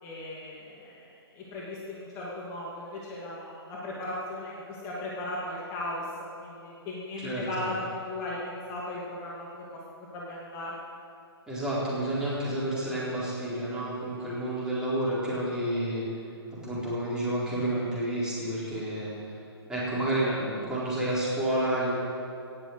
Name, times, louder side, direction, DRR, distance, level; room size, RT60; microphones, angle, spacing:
voice 1, 0.0-9.6 10.1-10.8, left 1 dB, 25° left, -5 dB, 2.5 m, -37 dB
voice 2, 7.2-7.7 11.5-16.0 16.6-19.1 19.7-21.9, right 1 dB, 5° right, -9 dB, 4.4 m, -30 dB
18.0 x 7.4 x 8.1 m, 2.5 s
hypercardioid pair, 150°, 13 cm